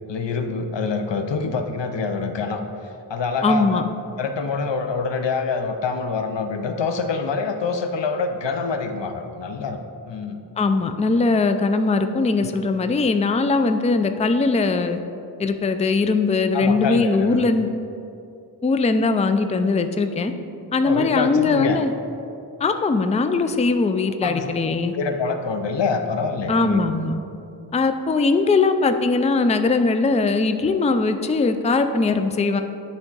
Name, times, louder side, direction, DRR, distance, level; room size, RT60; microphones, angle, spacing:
voice 1, 0.1-2.6 3.1-3.8 4.2-9.8 10.1-10.4 16.5-17.4 20.8-21.8 24.2-24.5 24.9-26.8, left 4 dB, 90° left, 7 dB, 0.6 m, -25 dB
voice 2, 3.4-3.8 10.6-15.0 15.4-17.7 18.6-20.3 20.7-21.9 22.6-24.9 26.5-27.2 27.7-32.6, left 3 dB, 20° left, 8 dB, 0.3 m, -20 dB
10.5 x 3.5 x 3.9 m, 2.7 s
wide cardioid pair, 50°, 42 cm